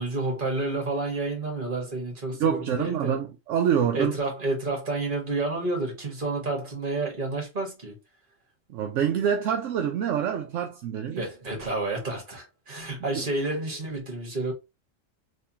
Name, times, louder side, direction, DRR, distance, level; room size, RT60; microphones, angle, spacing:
voice 1, 0.0-3.2 3.9-8.0 11.2-14.5, right 2 dB, 40° right, 1.7 m, -30 dB
voice 2, 2.4-4.1 8.7-11.3, right 8 dB, 75° right, 0.9 m, -26 dB
3.5 x 3.1 x 2.7 m
omnidirectional pair, 1.3 m